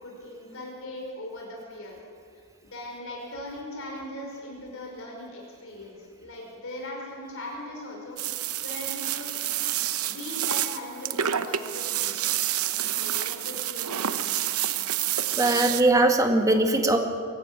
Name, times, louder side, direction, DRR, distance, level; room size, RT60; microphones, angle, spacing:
voice 1, 0.0-2.0 2.3-9.3 10.0-14.9, left 1 dB, 65° left, -1 dB, 5.2 m, -40 dB
sound 1, 8.2-15.8, right 11 dB, 75° right, 0.9 m, -28 dB
voice 2, 15.3-17.0, right 2 dB, 15° right, 4 dB, 1.8 m, -21 dB
23.0 x 14.0 x 8.9 m, 2.2 s
head